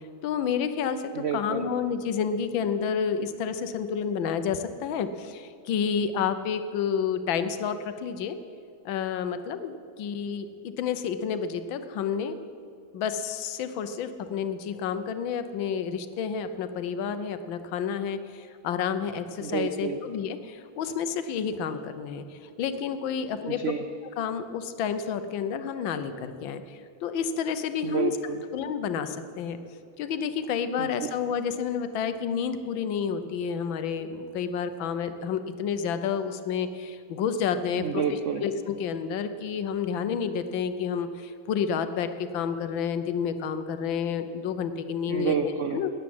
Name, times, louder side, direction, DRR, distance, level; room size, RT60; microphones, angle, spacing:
voice 1, 0.2-8.3 8.8-12.4 12.9-22.2 22.6-23.6 24.2-26.6 27.0-28.1 28.5-29.6 30.0-38.0 38.4-45.3 45.7-45.9, left 7 dB, 75° left, 10 dB, 1.5 m, -30 dB
voice 2, 1.1-1.7 19.4-20.0 23.5-23.8 27.8-28.4 30.8-30.9 37.8-38.4 45.1-45.8, right 6 dB, 90° right, 7 dB, 0.6 m, -29 dB
13.0 x 9.8 x 7.8 m, 2.4 s
omnidirectional pair, 2.2 m